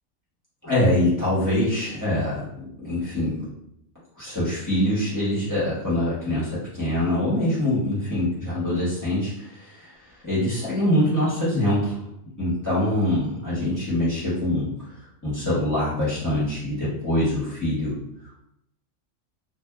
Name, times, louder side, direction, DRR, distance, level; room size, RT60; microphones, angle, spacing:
voice 1, 0.6-3.4 4.2-10.0 10.2-12.0 12.4-14.7 15.2-17.9, left 1 dB, 15° left, -10 dB, 1.1 m, -24 dB
2.8 x 2.5 x 2.3 m, 0.76 s
omnidirectional pair, 1.4 m